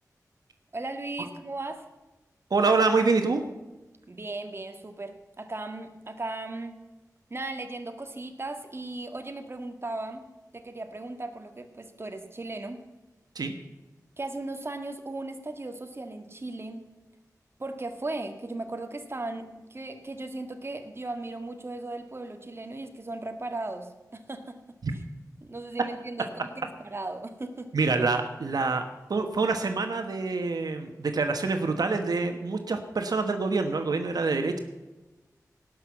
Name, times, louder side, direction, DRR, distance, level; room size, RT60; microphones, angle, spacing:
voice 1, 0.7-1.9 4.1-6.8 7.3-10.2 10.5-12.8 14.2-16.9 17.6-24.6 25.4-27.7, right 2 dB, 40° right, 6 dB, 1.8 m, -37 dB
voice 2, 2.5-3.4 13.3-13.5 24.8-24.9 27.7-28.8 29.1-34.6, right 3 dB, 90° right, 6 dB, 1.2 m, -26 dB
18.0 x 6.3 x 8.4 m, 1.1 s
wide cardioid pair, 75°, 6 cm